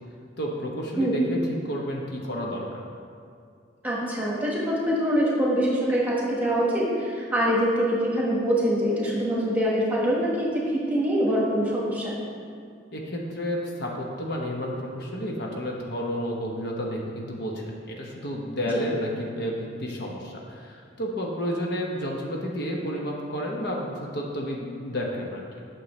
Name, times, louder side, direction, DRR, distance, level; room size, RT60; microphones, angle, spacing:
voice 1, 0.4-1.4 1.6-2.8 12.9-25.6, equal, 60° left, -1 dB, 0.9 m, -31 dB
voice 2, 3.8-12.2 18.7-18.8, equal, 10° right, -5 dB, 1.4 m, -24 dB
9.0 x 6.3 x 3.2 m, 2.3 s
head